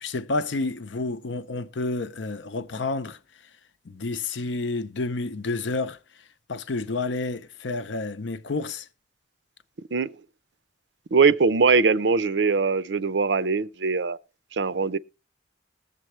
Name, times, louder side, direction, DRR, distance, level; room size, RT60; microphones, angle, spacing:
voice 1, 0.0-3.2 3.9-6.0 6.5-8.8, left 3 dB, 85° left, 0.7 m, -29 dB
voice 2, 11.1-14.2 14.5-15.0, right 4 dB, 80° right, 0.6 m, -21 dB
20.5 x 7.5 x 3.1 m
head